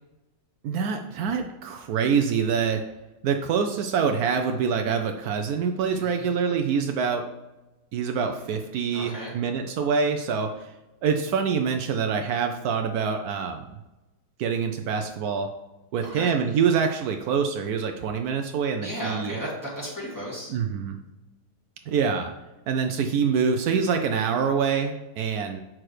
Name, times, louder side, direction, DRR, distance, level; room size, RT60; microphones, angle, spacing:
voice 1, 0.6-2.8 3.2-7.3 7.9-10.7 11.0-13.7 14.4-15.6 15.9-19.4 20.5-21.0 21.9-22.3 22.7-25.6, right 6 dB, 75° right, 5 dB, 1.0 m, -25 dB
voice 2, 5.9-6.3 8.9-9.3 16.0-16.3 18.8-20.5, equal, 10° left, -6 dB, 2.5 m, -35 dB
7.6 x 6.0 x 3.2 m, 1.0 s
omnidirectional pair, 1.7 m